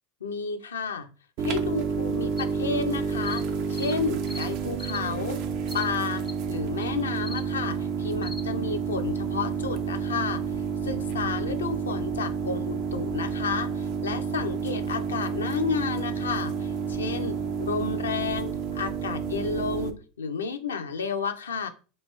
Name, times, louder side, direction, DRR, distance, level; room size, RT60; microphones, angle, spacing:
voice 1, 0.2-1.1 1.4-3.4 3.7-5.4 5.7-10.4 10.8-21.7, left 5 dB, 80° left, 7 dB, 0.5 m, -31 dB
sound 1, 1.4-19.9, right 6 dB, 55° right, 0.5 m, -30 dB
sound 2, 2.4-2.5 3.2-3.4 3.7-4.0 4.3-4.5 4.8-5.0 5.7-5.9 6.2-6.3 6.8-6.9 7.2-7.4 8.2-8.4, left 2 dB, 10° left, 0.5 m, -39 dB
3.2 x 2.5 x 3.2 m, 0.35 s
hypercardioid pair, 85°, 0 cm